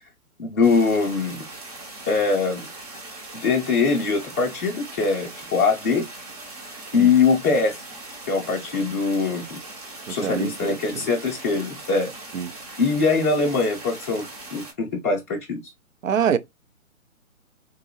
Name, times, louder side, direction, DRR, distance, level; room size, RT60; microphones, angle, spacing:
voice 1, 0.4-1.4 2.1-2.7 3.4-6.1 6.9-7.8 8.3-9.6 10.1-12.1 12.8-14.3 14.5-15.7, left 4 dB, 10° left, 0.5 m, -22 dB
sound 1, 0.6-14.7, right 2 dB, 25° right, 0.7 m, -40 dB
voice 2, 10.1-10.8 12.3-12.5 16.0-16.4, right 8 dB, 65° right, 0.6 m, -24 dB
3.7 x 2.6 x 2.7 m
figure-of-eight pair, 140°, 42 cm